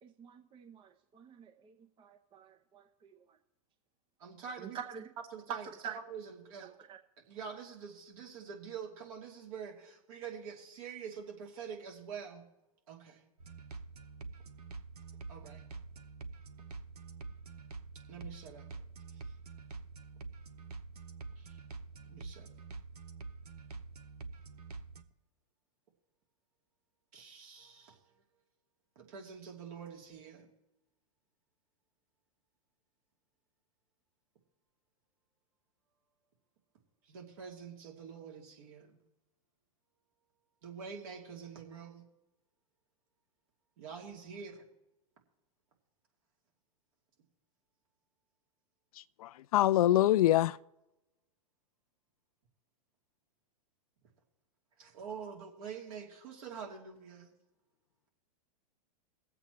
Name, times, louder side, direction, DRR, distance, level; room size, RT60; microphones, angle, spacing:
voice 1, 0.0-3.4 4.6-5.1 5.5-6.0 6.6-7.0, right 8 dB, 25° right, 0.8 m, -46 dB
voice 2, 4.2-4.8 5.3-5.6 6.1-6.6 7.3-12.4 12.9-13.3 15.3-15.6 18.1-18.6 19.1-19.2 21.4-21.6 22.0-22.5 27.1-28.0 29.0-30.5 37.1-39.0 40.6-42.1 43.8-44.6 54.8-57.3, right 6 dB, 65° right, 2.9 m, -46 dB
sound 1, 13.4-25.0, right 4 dB, 90° right, 0.9 m, -47 dB
voice 3, 49.2-50.6, left 14 dB, 70° left, 0.4 m, -25 dB
21.0 x 7.9 x 3.1 m
hypercardioid pair, 120°, 19 cm